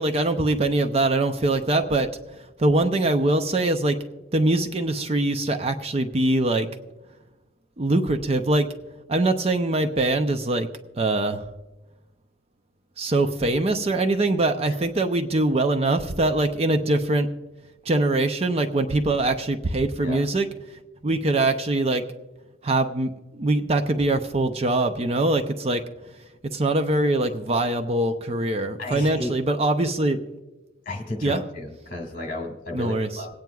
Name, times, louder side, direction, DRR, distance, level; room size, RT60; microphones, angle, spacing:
voice 1, 0.0-2.1 2.6-4.0 4.3-6.7 7.8-8.7 9.1-10.7 11.0-11.4 13.0-17.3 17.8-20.5 21.0-22.0 22.6-25.8 26.5-30.2 31.2-31.4 32.7-33.2, right 2 dB, 30° right, 7 dB, 0.5 m, -23 dB
voice 2, 28.8-29.3 30.9-33.3, left 1 dB, 45° left, 2 dB, 1.9 m, -33 dB
26.0 x 9.1 x 2.3 m, 1.1 s
head